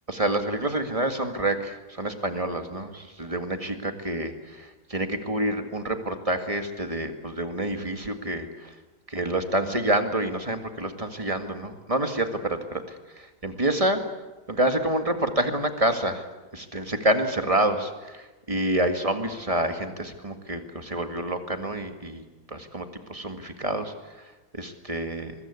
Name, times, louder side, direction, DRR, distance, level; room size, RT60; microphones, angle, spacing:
voice 1, 0.1-8.8 9.1-14.0 14.5-16.3 16.5-22.2 22.5-25.3, right 1 dB, 20° right, 6 dB, 1.8 m, -28 dB
24.5 x 21.5 x 8.4 m, 1.2 s
omnidirectional pair, 2.2 m